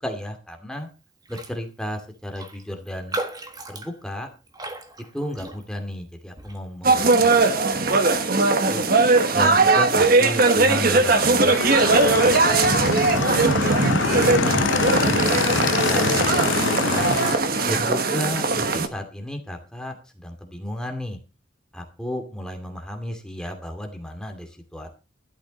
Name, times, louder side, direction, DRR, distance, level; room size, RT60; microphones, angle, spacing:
voice 1, 0.0-0.9 1.3-3.2 3.7-4.3 5.1-7.4 7.7-8.2 8.6-8.9 9.3-14.6 15.0-17.1 17.6-21.2 21.7-24.9, left 1 dB, 5° left, 4 dB, 2.5 m, -34 dB
Raindrop, 1.3-1.6 1.9-2.0 2.3-5.9 6.4-6.6, right 2 dB, 20° right, 1.4 m, -36 dB
sound 1, 6.8-18.9, right 3 dB, 50° right, 1.3 m, -19 dB
Motorcycle / Engine, 11.5-17.4, left 5 dB, 85° left, 0.8 m, -25 dB
12.5 x 12.0 x 4.2 m, 0.32 s
head